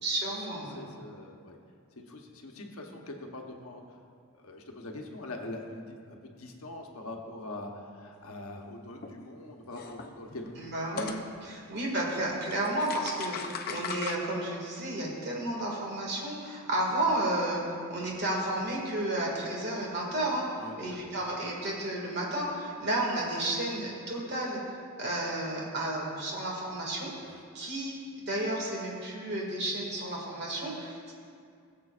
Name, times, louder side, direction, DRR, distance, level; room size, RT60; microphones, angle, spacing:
voice 1, 0.0-0.8 10.6-17.6 17.9-24.6 25.0-27.1 27.5-31.1, right 1 dB, 50° right, -2 dB, 2.1 m, -32 dB
voice 2, 0.5-1.6 2.0-3.8 4.3-10.7 11.4-11.6 20.6-21.1 27.3-27.4, left 2 dB, 70° left, 2 dB, 1.0 m, -43 dB
sound 1, 9.0-9.2 9.7-11.2 12.2-12.3 12.5-14.2, left 5 dB, 40° left, 0.6 m, -38 dB
18.5 x 7.5 x 2.5 m, 2.2 s
head